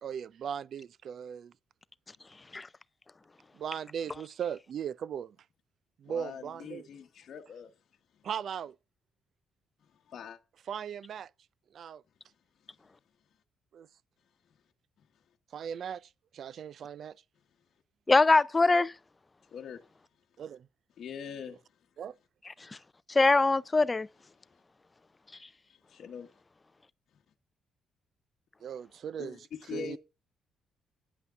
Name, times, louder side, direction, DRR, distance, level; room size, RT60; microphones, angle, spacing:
voice 1, 0.0-1.5 3.5-5.3 6.0-6.9 8.2-8.7 10.7-11.3 11.7-12.0 13.7-13.9 15.5-17.1 20.4-20.7 22.0-22.1 28.6-29.4 29.7-30.0, right 8 dB, 60° right, 0.4 m, -38 dB
voice 2, 6.0-7.7 10.1-10.4 19.5-19.8 21.0-21.6 25.9-26.3 29.2-30.0, left 7 dB, 60° left, 1.0 m, -42 dB
voice 3, 18.1-18.9 23.1-24.1, left 3 dB, 25° left, 0.5 m, -22 dB
9.6 x 5.7 x 6.5 m
cardioid pair, 90°, 0 cm